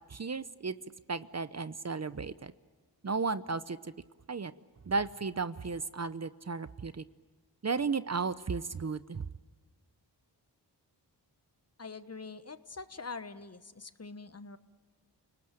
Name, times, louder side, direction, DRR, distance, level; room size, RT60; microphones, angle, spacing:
voice 1, 0.1-0.8 1.1-2.5 3.0-3.9 4.3-4.5 4.9-7.0 7.6-9.3, right 4 dB, 40° right, 14 dB, 0.8 m, -34 dB
voice 2, 11.8-14.6, left 4 dB, 35° left, 12 dB, 1.2 m, -44 dB
29.0 x 19.0 x 9.1 m, 1.4 s
cardioid pair, 55°, 42 cm